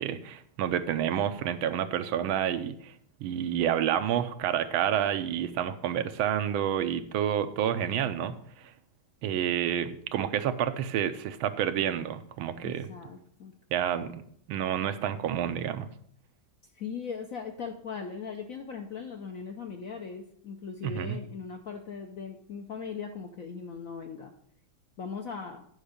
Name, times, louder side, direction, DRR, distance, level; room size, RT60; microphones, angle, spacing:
voice 1, 0.0-2.9 3.2-8.3 9.2-12.9 13.7-15.9 20.8-21.2, right 10 dB, 90° right, 10 dB, 1.5 m, -29 dB
voice 2, 12.6-13.5 16.7-24.3 25.0-25.7, left 6 dB, 70° left, 4 dB, 0.8 m, -39 dB
9.7 x 5.5 x 5.0 m, 0.64 s
omnidirectional pair, 2.2 m